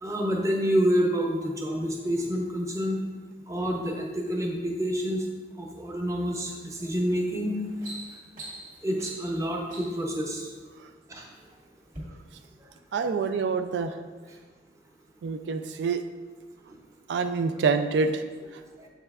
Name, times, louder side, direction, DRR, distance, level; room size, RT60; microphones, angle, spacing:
voice 1, 0.0-3.0 3.5-5.2 5.6-7.6 8.8-10.5 11.1-11.3, equal, 15° right, 0 dB, 0.6 m, -28 dB
sound 1, 6.9-7.1 7.5-10.1 10.9-11.5 11.9-12.0, right 1 dB, 45° right, 1.7 m, -43 dB
voice 2, 12.9-14.0 15.2-16.0 17.1-18.2, right 5 dB, 85° right, 8 dB, 0.3 m, -26 dB
7.3 x 5.5 x 2.4 m, 1.4 s
head